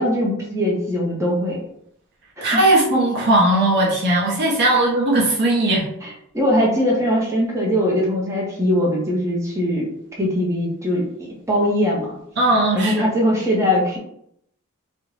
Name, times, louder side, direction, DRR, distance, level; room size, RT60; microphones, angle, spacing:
voice 1, 0.0-1.6 2.4-2.5 6.0-6.1 6.3-9.9 10.2-12.1 12.7-14.0, equal, 15° right, -3 dB, 0.6 m, -21 dB
voice 2, 2.4-5.9 12.4-13.1, right 1 dB, 50° right, -3 dB, 0.6 m, -18 dB
2.5 x 2.1 x 3.1 m, 0.73 s
head